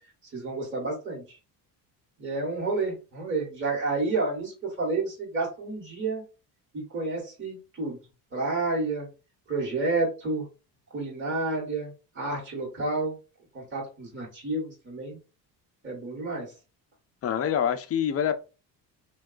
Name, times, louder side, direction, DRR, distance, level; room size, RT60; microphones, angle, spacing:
voice 1, 0.3-1.4 2.2-6.2 6.7-8.0 8.3-9.1 9.5-10.5 10.9-13.2 13.5-15.2 15.8-16.5, right 3 dB, 30° right, 1.1 m, -30 dB
voice 2, 17.2-18.4, left 9 dB, 35° left, 0.4 m, -26 dB
3.4 x 2.2 x 2.3 m
cardioid pair, 125°, 41 cm